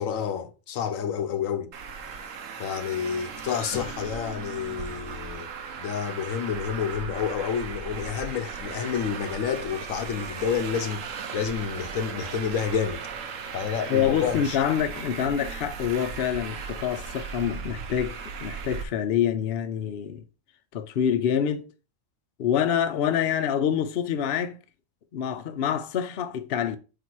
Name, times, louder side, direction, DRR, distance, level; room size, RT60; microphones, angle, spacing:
voice 1, 0.0-1.7 2.6-5.5 5.8-13.0 13.5-14.6, left 7 dB, 85° left, 1.1 m, -29 dB
Traffic noise roadway noise, 1.7-18.8, right 6 dB, 75° right, 1.2 m, -37 dB
voice 2, 13.9-20.2 20.7-21.7 22.4-24.6 25.1-26.8, left 9 dB, 55° left, 0.8 m, -26 dB
5.2 x 4.2 x 4.6 m
omnidirectional pair, 1.4 m